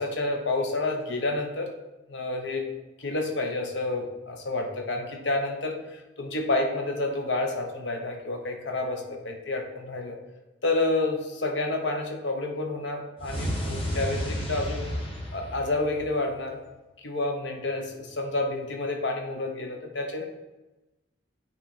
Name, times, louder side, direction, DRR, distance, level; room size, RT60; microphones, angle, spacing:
voice 1, 0.0-1.7 2.1-2.7 3.0-10.2 10.6-14.9 15.3-16.6 17.0-20.3, left 2 dB, 60° left, 3 dB, 1.0 m, -29 dB
sound 1, 13.2-16.4, equal, 30° left, 1.2 m, -32 dB
8.7 x 3.0 x 4.3 m, 1.0 s
head